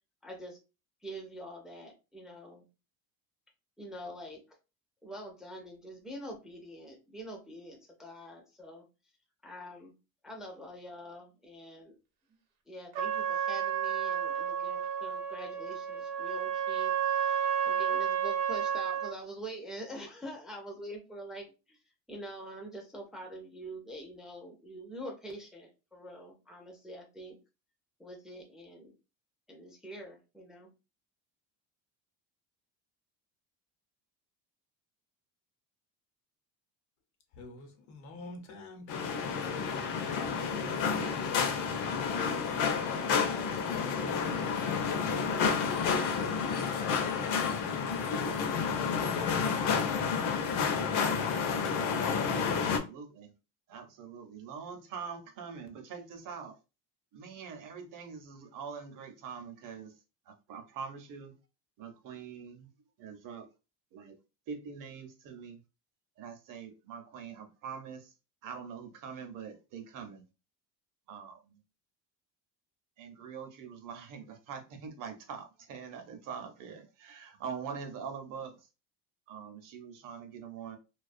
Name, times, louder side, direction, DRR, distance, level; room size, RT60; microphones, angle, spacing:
voice 1, 0.2-0.6 1.0-2.6 3.8-4.4 5.0-8.8 9.4-9.9 10.2-12.0 12.7-21.8 22.1-27.4 28.0-29.0 29.5-30.7, right 1 dB, ahead, 0.3 m, -45 dB
Trumpet, 12.9-19.2, right 8 dB, 85° right, 0.7 m, -31 dB
voice 2, 37.3-39.6 40.2-41.3 41.7-43.3 43.6-46.4, left 2 dB, 80° left, 0.9 m, -47 dB
sound 1, 38.9-52.8, left 6 dB, 55° left, 0.6 m, -30 dB
voice 3, 52.4-53.3 53.7-56.6 57.1-59.9 60.3-61.3 61.8-62.7 63.0-63.5 63.9-64.2 64.5-65.6 66.2-68.1 68.4-70.2 71.1-71.6 73.0-78.7 79.3-80.8, right 6 dB, 50° right, 0.6 m, -44 dB
2.3 x 2.3 x 2.4 m
cardioid pair, 135°, 39 cm